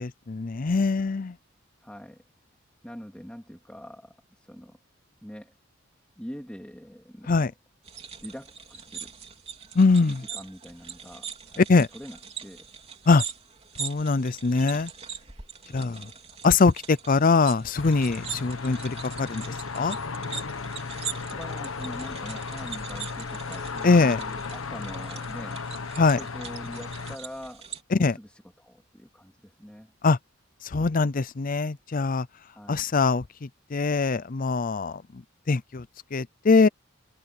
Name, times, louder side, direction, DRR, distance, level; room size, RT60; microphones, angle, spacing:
voice 1, 0.0-1.3 7.3-7.5 9.8-10.2 11.7-11.9 13.1-13.2 13.8-14.9 15.7-16.1 16.4-19.4 19.7-20.0 23.8-24.2 26.0-26.2 27.9-28.2 30.0-30.2 30.7-32.3 32.7-33.2 33.7-35.0 35.5-35.8 36.1-36.7, left 4 dB, 40° left, 0.5 m, -22 dB
voice 2, 1.8-2.2 2.8-4.8 5.2-5.5 6.2-7.5 8.2-9.1 9.9-12.7 15.7-16.1 21.3-25.7 26.2-27.7 28.0-29.9 32.5-32.9, equal, 5° left, 2.5 m, -43 dB
sound 1, 7.8-27.8, right 7 dB, 30° right, 3.5 m, -41 dB
sound 2, 17.7-27.2, left 4 dB, 85° left, 1.2 m, -35 dB
head